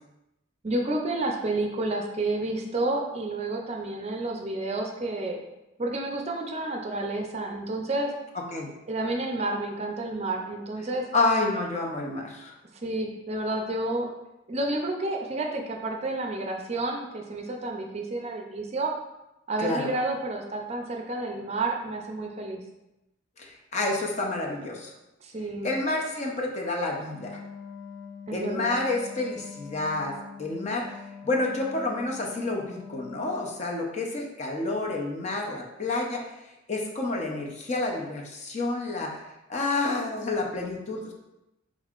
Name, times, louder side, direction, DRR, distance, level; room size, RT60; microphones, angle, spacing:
voice 1, 0.6-5.4 5.8-8.1 8.9-11.1 12.8-14.1 14.5-18.9 19.5-22.6 25.2-25.7 28.3-28.7, right 2 dB, 35° right, 2 dB, 0.5 m, -30 dB
voice 2, 11.1-12.5 19.6-19.9 23.4-24.9 25.6-27.4 28.3-30.9 31.2-36.3 36.7-39.2 39.5-41.1, left 2 dB, 35° left, 0 dB, 0.6 m, -29 dB
Wind instrument woodwind instrument, 27.1-33.6, left 6 dB, 65° left, 0.9 m, -44 dB
5.3 x 3.6 x 2.4 m, 0.94 s
head